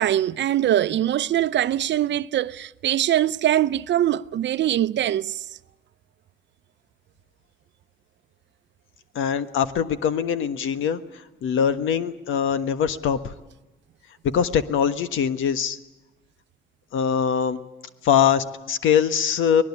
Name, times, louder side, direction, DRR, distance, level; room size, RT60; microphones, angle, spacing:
voice 1, 0.0-5.4, right 12 dB, 65° right, 0.7 m, -22 dB
voice 2, 9.1-13.3 14.2-15.8 16.9-17.6 18.0-19.6, left 8 dB, 80° left, 1.5 m, -22 dB
24.0 x 20.0 x 8.6 m
cardioid pair, 90°, 20 cm